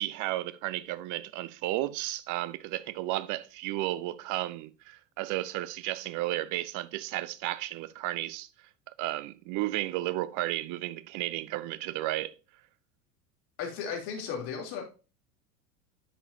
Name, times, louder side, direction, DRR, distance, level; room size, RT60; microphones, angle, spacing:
voice 1, 0.0-8.5 9.0-12.3, right 16 dB, 40° right, 0.7 m, -33 dB
voice 2, 13.6-14.8, left 6 dB, 55° left, 3.2 m, -35 dB
10.0 x 6.6 x 2.7 m
hypercardioid pair, 85°, 49 cm